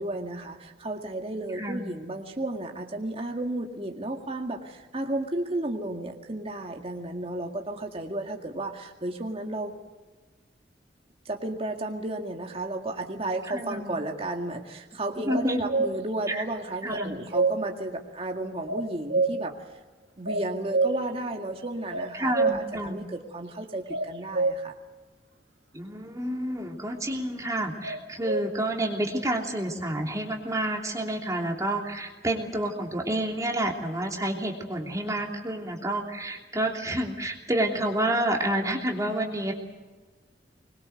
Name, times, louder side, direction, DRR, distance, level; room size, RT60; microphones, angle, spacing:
voice 1, 0.0-9.7 11.3-19.8 20.2-24.7, right 2 dB, 35° right, 2 dB, 2.1 m, -33 dB
voice 2, 1.5-1.9 13.5-14.0 15.2-15.7 16.3-16.4 16.8-17.2 22.1-23.1 25.7-39.5, right 1 dB, 20° right, 1 dB, 3.0 m, -29 dB
sound 1, 15.3-16.0 16.9-17.5 18.7-19.4 20.3-21.0 21.9-22.6 23.9-24.5 27.8-28.5, right 3 dB, 80° right, 2.0 m, -26 dB
25.0 x 22.0 x 8.0 m, 1.3 s
head